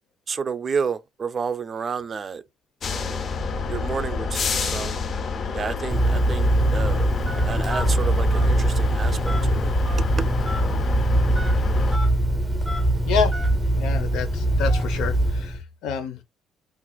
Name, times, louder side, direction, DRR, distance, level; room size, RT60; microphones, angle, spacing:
voice 1, 0.3-2.4 2.9-3.2 3.7-5.0 5.5-7.1 7.4-9.7 10.2-10.3, right 5 dB, 30° right, 0.4 m, -30 dB
sound 1, 2.8-12.0, left 5 dB, 40° left, 0.4 m, -29 dB
sound 2, 3.3-8.1, equal, 20° left, 1.1 m, -38 dB
Telephone, 5.9-15.6, right 1 dB, ahead, 0.7 m, -22 dB
voice 2, 13.0-13.4 13.7-16.2, left 7 dB, 80° left, 0.7 m, -28 dB
3.9 x 2.4 x 2.2 m
cardioid pair, 150°, 0 cm